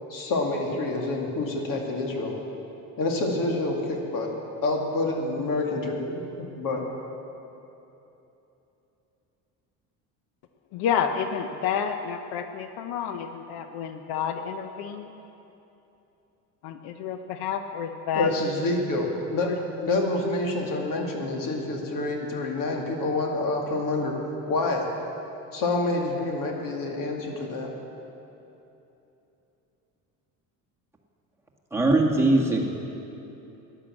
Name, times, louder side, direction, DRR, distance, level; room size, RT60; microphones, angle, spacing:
voice 1, 0.1-2.4 3.0-4.3 4.6-6.8 18.1-19.5 19.8-24.2 24.5-24.9 25.5-27.7, left 2 dB, 65° left, 1 dB, 2.4 m, -27 dB
voice 2, 10.7-15.1 16.6-18.3 19.4-19.6, left 8 dB, 85° left, 7 dB, 0.8 m, -30 dB
voice 3, 31.7-32.6, right 2 dB, 5° right, -2 dB, 1.8 m, -20 dB
13.0 x 10.5 x 7.6 m, 3.0 s
cardioid pair, 110°, 36 cm